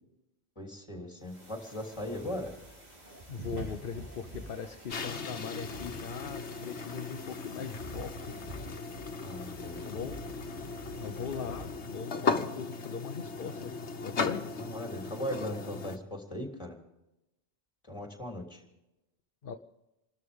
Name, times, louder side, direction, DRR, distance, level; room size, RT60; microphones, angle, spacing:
voice 1, 0.6-2.5 9.2-9.9 14.5-16.8 17.9-18.6, equal, 25° left, 2 dB, 3.2 m, -39 dB
sound 1, 1.2-11.9, right 1 dB, 40° right, 3.7 m, -47 dB
voice 2, 3.3-8.4 9.8-10.2 11.0-13.7 14.0-14.4 19.4-19.6, left 6 dB, 55° left, 7 dB, 0.9 m, -40 dB
sound 2, 4.9-16.0, left 4 dB, 85° left, 1.5 m, -37 dB
28.0 x 13.0 x 3.6 m, 0.93 s
omnidirectional pair, 1.1 m